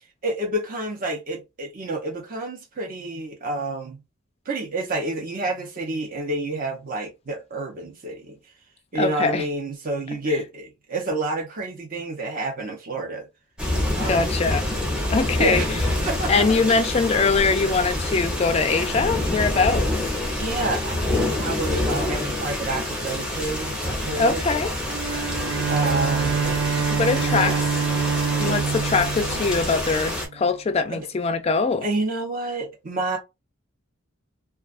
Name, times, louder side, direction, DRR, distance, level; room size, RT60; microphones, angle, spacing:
voice 1, 0.2-4.0 4.5-8.4 8.9-13.3 13.9-14.4 15.4-15.8 16.0-16.3 20.3-21.0 21.3-24.4 25.7-26.6 27.2-27.7 30.9-31.1 31.8-33.2, right 2 dB, 40° right, 0.7 m, -29 dB
voice 2, 8.9-9.4 14.0-14.6 15.1-15.6 16.3-19.9 24.2-24.7 26.9-27.6 28.4-31.8, left 4 dB, 30° left, 0.3 m, -22 dB
sound 1, 13.6-30.3, left 1 dB, 5° right, 0.6 m, -27 dB
Bowed string instrument, 24.8-30.3, right 6 dB, 60° right, 0.3 m, -26 dB
2.3 x 2.3 x 2.4 m
head